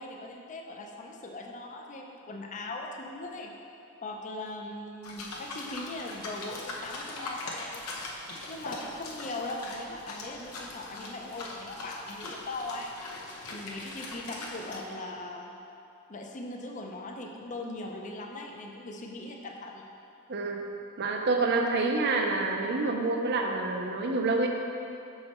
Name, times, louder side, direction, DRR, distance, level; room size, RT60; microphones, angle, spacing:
voice 1, 0.0-3.5 4.0-7.9 8.5-12.9 13.5-15.5 16.1-19.8, left 2 dB, 35° left, 1 dB, 0.5 m, -40 dB
sound 1, 5.0-14.8, left 2 dB, 90° left, 0.8 m, -41 dB
voice 2, 20.3-20.6 21.0-24.5, right 3 dB, 50° right, 2 dB, 0.6 m, -27 dB
6.2 x 4.8 x 4.3 m, 2.7 s
head